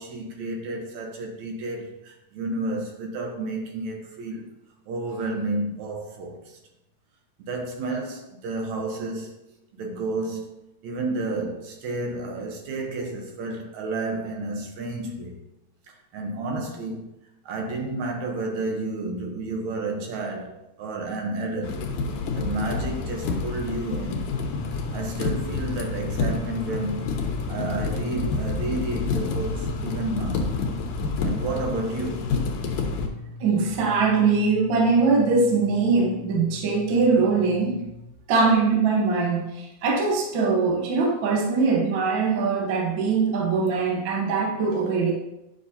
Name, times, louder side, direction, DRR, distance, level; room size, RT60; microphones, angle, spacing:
voice 1, 0.0-4.5 4.9-6.6 7.4-9.4 9.7-15.4 16.1-17.1 17.5-21.8 22.3-24.3 24.9-27.1 27.5-30.6 31.2-32.3, right 2 dB, 70° right, 2.3 m, -31 dB
sound 1, 21.6-33.1, left 4 dB, 80° left, 2.3 m, -29 dB
sound 2, 24.5-38.1, left 2 dB, 55° left, 1.5 m, -39 dB
voice 2, 33.4-37.8 38.3-45.1, right 4 dB, 55° right, 1.4 m, -22 dB
9.8 x 6.1 x 2.8 m
omnidirectional pair, 3.5 m